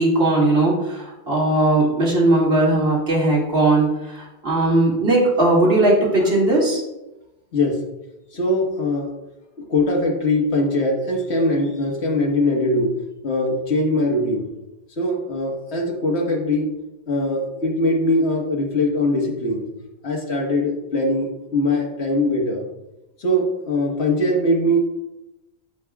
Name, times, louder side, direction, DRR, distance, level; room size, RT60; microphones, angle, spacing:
voice 1, 0.0-6.8, right 2 dB, 60° right, -4 dB, 2.4 m, -18 dB
voice 2, 7.5-7.8 8.3-9.1 9.6-12.9 13.2-14.5 15.0-16.7 17.1-19.7 20.0-22.6 23.2-24.8, left 1 dB, 75° left, 0 dB, 1.7 m, -21 dB
14.5 x 5.2 x 2.4 m, 0.97 s
omnidirectional pair, 1.1 m